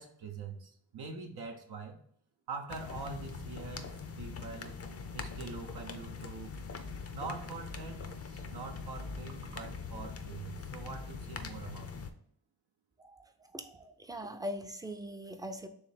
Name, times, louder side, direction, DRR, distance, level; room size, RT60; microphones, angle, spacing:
voice 1, 0.0-2.0 2.5-4.8 5.1-6.5 7.1-12.1, right 4 dB, 80° right, 3 dB, 0.7 m, -44 dB
sound 1, 2.7-12.1, left 5 dB, 40° left, 0.5 m, -42 dB
voice 2, 13.0-15.7, equal, 10° right, 7 dB, 0.5 m, -42 dB
3.2 x 3.2 x 4.7 m, 0.67 s
cardioid pair, 65°, 38 cm